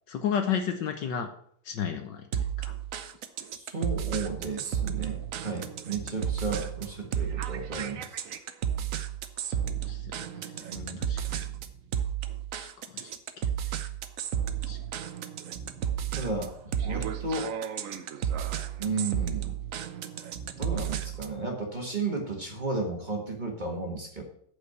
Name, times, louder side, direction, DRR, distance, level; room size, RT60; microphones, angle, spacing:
voice 1, 0.1-1.3 1.7-2.7 9.4-10.5 11.1-11.4 12.5-12.7 12.9-13.8 14.7-14.8 16.8-16.9, left 8 dB, 65° left, 6 dB, 1.4 m, -34 dB
sound 1, 2.3-21.4, right 9 dB, 70° right, 0.8 m, -33 dB
voice 2, 3.5-8.2 10.7-11.1 16.2-17.5 18.8-19.5 20.6-24.2, right 3 dB, 25° right, 1 dB, 1.6 m, -33 dB
8.5 x 5.4 x 7.8 m, 0.63 s
omnidirectional pair, 2.3 m